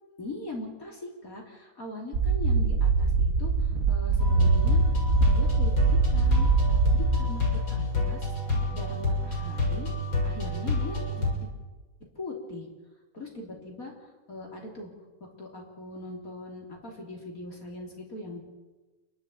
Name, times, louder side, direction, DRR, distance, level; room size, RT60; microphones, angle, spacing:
voice 1, 0.2-4.8 5.2-8.3 8.7-9.9 10.2-11.5 12.2-12.7 13.1-14.9 15.4-18.4, left 2 dB, 40° left, 0 dB, 4.0 m, -41 dB
sound 1, 2.1-7.2, right 4 dB, 50° right, 1.4 m, -23 dB
sound 2, 4.2-11.3, left 3 dB, 75° left, 6.8 m, -28 dB
28.0 x 12.0 x 8.7 m, 1.2 s
omnidirectional pair, 2.2 m